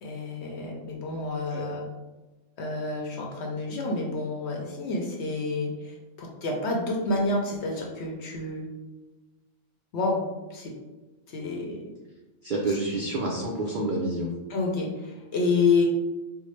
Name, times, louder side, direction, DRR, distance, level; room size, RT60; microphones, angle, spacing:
voice 1, 0.0-1.9 2.6-8.7 9.9-10.2 10.5-10.7 11.3-11.8 14.5-15.9, left 3 dB, 60° left, 0 dB, 0.8 m, -28 dB
voice 2, 12.4-14.3, right 2 dB, 75° right, -2 dB, 0.4 m, -28 dB
4.4 x 2.1 x 3.1 m, 1.2 s
omnidirectional pair, 1.5 m